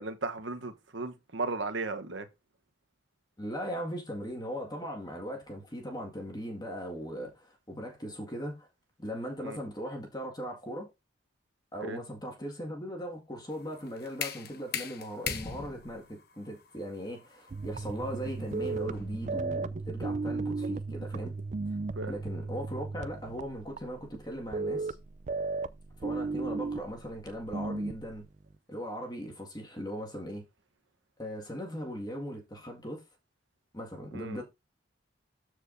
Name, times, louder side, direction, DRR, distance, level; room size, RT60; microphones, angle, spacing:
voice 1, 0.0-2.3 9.4-9.6 11.9-12.0 22.0-22.1 34.1-34.4, right 3 dB, 70° right, 1.0 m, -35 dB
voice 2, 3.4-8.7 9.0-10.9 11.7-21.8 22.1-25.0 26.0-28.3 28.7-30.4 31.2-33.0 33.7-34.4, equal, 20° left, 1.8 m, -39 dB
sound 1, 13.5-19.3, left 7 dB, 50° left, 0.9 m, -40 dB
sound 2, 17.5-28.2 28.5-28.6, right 3 dB, 35° right, 0.4 m, -35 dB
13.5 x 4.7 x 2.6 m
head